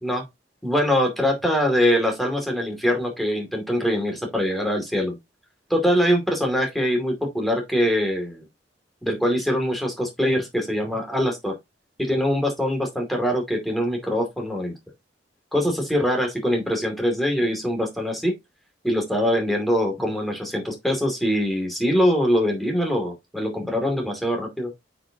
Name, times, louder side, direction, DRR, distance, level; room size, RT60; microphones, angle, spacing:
voice 1, 0.6-5.1 5.7-8.5 9.0-11.5 12.0-14.7 15.5-18.3 18.8-24.7, equal, ahead, 2.4 m, -23 dB
8.6 x 5.1 x 2.8 m
head